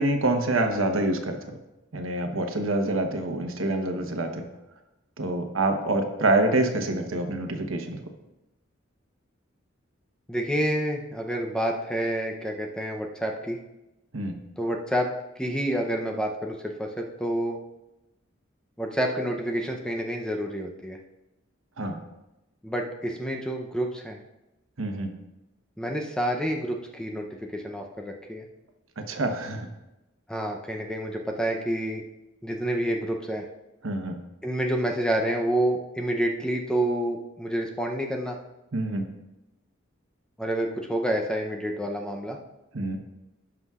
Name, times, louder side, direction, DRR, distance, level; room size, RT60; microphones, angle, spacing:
voice 1, 0.0-1.6 1.9-4.5 5.2-8.0 14.1-14.4 21.8-22.0 24.8-25.1 29.0-29.7 33.8-34.2 38.7-39.1 42.7-43.0, right 2 dB, 80° right, 5 dB, 1.1 m, -26 dB
voice 2, 10.3-13.6 14.6-15.1 15.4-17.6 18.8-21.0 22.6-24.2 25.8-28.5 30.3-32.0 32.4-33.4 34.4-38.4 40.4-42.4, right 1 dB, 5° left, 1 dB, 0.6 m, -28 dB
16.5 x 6.0 x 2.4 m, 0.97 s
head